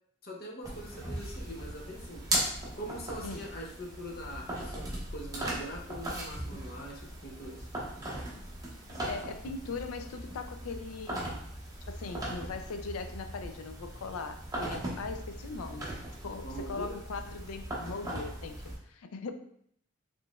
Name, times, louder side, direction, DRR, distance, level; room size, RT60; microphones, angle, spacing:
voice 1, 0.2-7.7 16.4-17.0, equal, 45° left, -1 dB, 0.7 m, -43 dB
sound 1, 0.6-18.8, right 1 dB, 15° right, 0.7 m, -38 dB
voice 2, 3.2-3.5 8.9-11.5 11.9-15.9 16.2-19.3, left 4 dB, 85° left, 8 dB, 0.4 m, -40 dB
4.0 x 3.1 x 2.3 m, 0.67 s
head